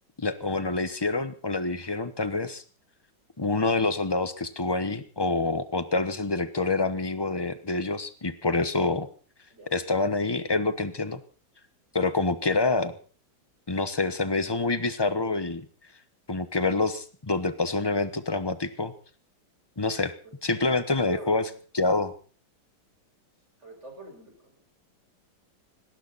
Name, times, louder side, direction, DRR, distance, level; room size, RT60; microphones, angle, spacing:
voice 1, 0.2-2.6 3.4-9.1 9.7-11.2 11.9-12.9 13.7-15.6 16.3-18.9 19.8-20.1 20.4-21.4 21.7-22.1, left 3 dB, 20° left, 12 dB, 0.8 m, -27 dB
voice 2, 20.7-21.5 23.6-24.6, right 2 dB, 35° right, 3 dB, 5.9 m, -44 dB
18.5 x 18.0 x 4.2 m, 0.39 s
omnidirectional pair, 2.1 m